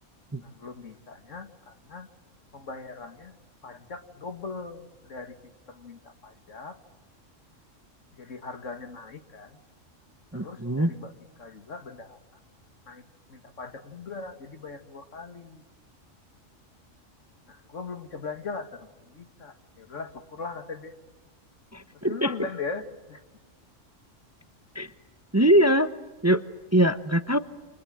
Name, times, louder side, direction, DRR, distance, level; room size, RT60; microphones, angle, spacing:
voice 1, 0.4-2.1 2.5-3.4 3.6-5.4 5.7-6.8 8.1-9.6 10.3-11.1 11.4-12.2 12.9-13.0 13.3-15.6 17.5-20.9 21.9-23.2, left 4 dB, 75° left, 8 dB, 2.3 m, -40 dB
voice 2, 10.3-10.9 21.7-22.3 24.7-24.9 25.3-25.9 26.2-26.4 26.7-27.4, right 1 dB, 15° right, 11 dB, 0.8 m, -22 dB
29.5 x 26.0 x 7.6 m, 1.2 s
omnidirectional pair, 1.3 m